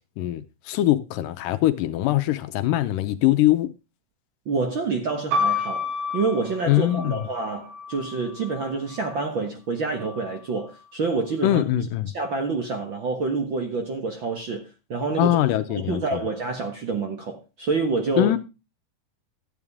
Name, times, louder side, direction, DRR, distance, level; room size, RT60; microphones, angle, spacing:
voice 1, 0.2-3.7 6.7-7.2 11.4-12.1 15.2-16.2 18.2-18.4, left 13 dB, 80° left, 2.4 m, -22 dB
voice 2, 4.4-11.6 12.1-15.4 15.7-18.3, right 4 dB, 50° right, 1.5 m, -27 dB
sound 1, 5.3-9.2 10.0-10.7, left 3 dB, 85° right, 3.8 m, -30 dB
12.5 x 8.9 x 3.5 m
omnidirectional pair, 3.9 m